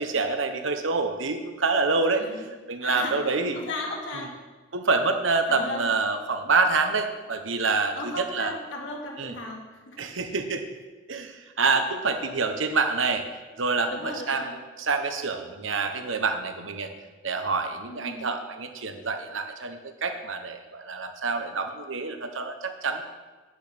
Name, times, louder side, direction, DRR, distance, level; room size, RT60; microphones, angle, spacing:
voice 1, 0.0-2.3 2.7-3.6 4.7-8.5 9.2-9.3 10.0-10.6 11.1-13.2 13.6-16.9 17.2-23.0, right 4 dB, 80° right, 6 dB, 1.1 m, -27 dB
voice 2, 2.2-2.5 2.8-4.3 5.5-5.9 7.9-10.0 13.9-14.5 17.9-18.3, left 1 dB, 75° left, -1 dB, 2.3 m, -36 dB
9.3 x 6.1 x 8.6 m, 1.3 s
head